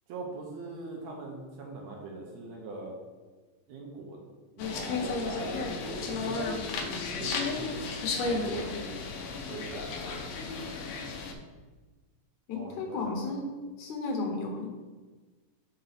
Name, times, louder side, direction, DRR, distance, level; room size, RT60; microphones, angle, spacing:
voice 1, 0.1-2.9 3.7-4.3 4.6-6.4 7.2-10.8 12.5-13.4, right 3 dB, 70° right, 0 dB, 1.7 m, -42 dB
sound 1, 4.6-11.3, left 4 dB, 85° left, 1.5 m, -33 dB
voice 2, 12.5-13.5 13.8-14.7, left 3 dB, 70° left, 1 dB, 2.0 m, -33 dB
5.6 x 3.9 x 5.6 m, 1.3 s
omnidirectional pair, 3.9 m